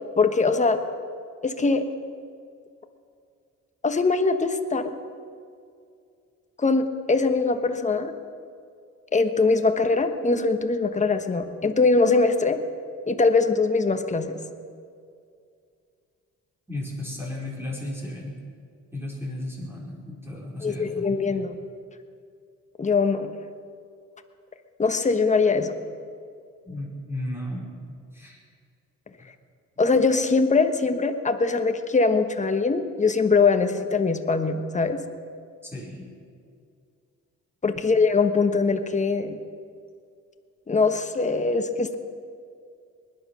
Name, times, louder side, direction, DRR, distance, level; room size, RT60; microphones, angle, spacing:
voice 1, 0.2-0.8 1.4-1.9 3.8-4.9 6.6-8.1 9.1-12.6 13.1-14.4 20.6-21.5 22.8-23.3 24.8-25.7 29.8-35.0 37.6-39.4 40.7-41.9, left 4 dB, 25° left, 7 dB, 1.2 m, -22 dB
voice 2, 16.7-18.4 18.9-21.5 26.6-27.8 28.1-28.4 29.2-29.3 35.6-36.1, left 1 dB, 10° right, -3 dB, 4.7 m, -34 dB
19.5 x 11.0 x 6.2 m, 2.3 s
cardioid pair, 90°, 30 cm